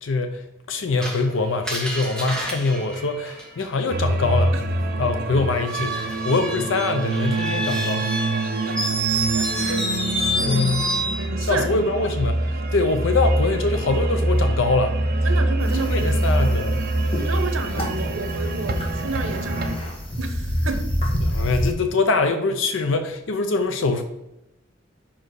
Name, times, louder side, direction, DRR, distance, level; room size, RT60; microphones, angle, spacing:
voice 1, 0.0-4.6 5.0-8.1 10.4-10.8 11.4-15.0 15.9-16.9 17.1-17.2 21.2-24.0, left 3 dB, 75° left, 0.6 m, -23 dB
Screech, 1.0-3.9 5.5-11.3, right 1 dB, 5° left, 1.1 m, -28 dB
sound 1, 3.9-19.8, right 1 dB, 50° right, 0.6 m, -25 dB
voice 2, 8.4-10.0 10.4-11.7 15.2-16.3 17.2-20.9, right 3 dB, 90° right, 0.9 m, -31 dB
sound 2, 15.6-21.7, equal, 30° left, 1.3 m, -28 dB
5.7 x 4.5 x 4.7 m
head